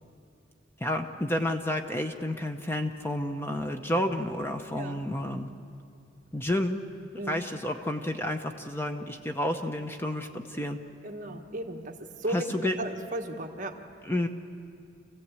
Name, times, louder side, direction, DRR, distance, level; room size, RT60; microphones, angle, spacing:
voice 1, 0.8-5.5 6.3-6.8 7.3-10.8 12.3-12.7 14.0-14.3, left 1 dB, 10° left, 5 dB, 0.8 m, -30 dB
voice 2, 4.7-5.0 7.1-7.5 11.0-13.8, right 1 dB, 40° right, 2 dB, 1.6 m, -35 dB
27.0 x 15.5 x 8.3 m, 2.5 s
head